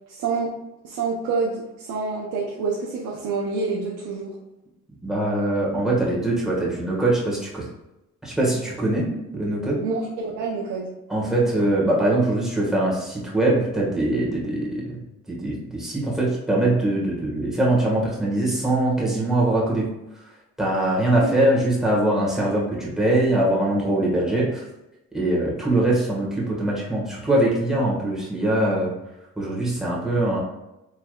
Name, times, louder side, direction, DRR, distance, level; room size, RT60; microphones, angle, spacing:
voice 1, 0.1-0.5 0.8-4.4 8.9-9.2 9.8-10.9 21.2-21.3, right 4 dB, 85° right, -3 dB, 0.7 m, -27 dB
voice 2, 5.0-7.6 8.2-9.0 9.3-9.8 11.1-15.0 15.3-19.8 20.6-24.7 25.1-28.9 29.4-30.4, right 1 dB, ahead, -5 dB, 1.5 m, -22 dB
4.6 x 3.3 x 2.3 m, 0.95 s
cardioid pair, 90°, 30 cm